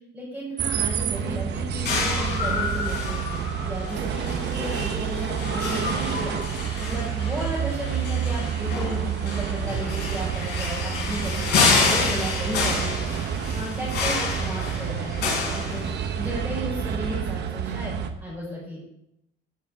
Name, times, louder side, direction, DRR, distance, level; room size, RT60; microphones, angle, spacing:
voice 1, 0.1-3.2 3.6-6.4 6.8-13.0 13.5-15.9 16.2-18.9, equal, 5° right, -8 dB, 4.4 m, -34 dB
sound 1, 0.6-18.1, right 8 dB, 60° right, 1.0 m, -29 dB
sound 2, 1.8-16.3, left 4 dB, 60° left, 4.3 m, -28 dB
15.5 x 7.1 x 3.7 m, 0.81 s
cardioid pair, 145°, 19 cm